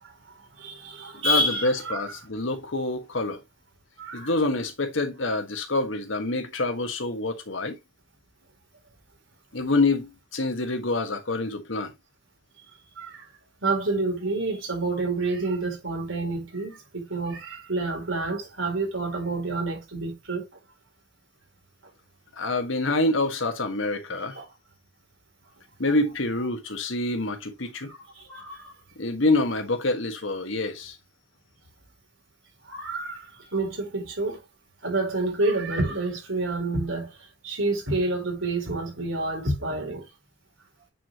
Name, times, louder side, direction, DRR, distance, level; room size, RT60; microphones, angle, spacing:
voice 1, 0.0-2.0 4.0-4.3 13.0-13.3 13.6-20.5 24.3-24.5 27.9-28.7 32.7-34.4 34.8-37.2 37.4-40.1, right 2 dB, 90° right, 4.2 m, -28 dB
voice 2, 1.1-3.4 4.1-7.8 9.5-11.9 22.4-24.4 25.8-27.9 29.0-31.0, left 2 dB, 80° left, 1.5 m, -26 dB
8.6 x 4.8 x 3.0 m
head